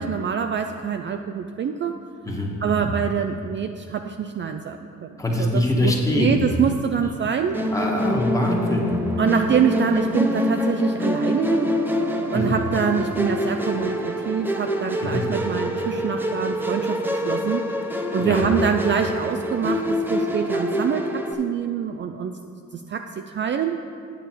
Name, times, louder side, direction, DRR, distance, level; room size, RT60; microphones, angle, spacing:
voice 1, 0.0-2.0 2.6-5.1 5.4-7.6 9.2-11.7 12.3-17.7 18.1-22.3 22.7-23.8, right 7 dB, 40° right, 6 dB, 0.4 m, -25 dB
voice 2, 2.2-2.9 5.2-6.4 7.7-9.0 12.3-12.6 15.0-15.2 18.2-18.4, left 1 dB, 10° left, -1 dB, 1.5 m, -24 dB
Musical instrument, 7.5-21.3, left 1 dB, 5° right, 0.7 m, -25 dB
9.1 x 7.0 x 4.4 m, 2.4 s
cardioid pair, 90°, 30 cm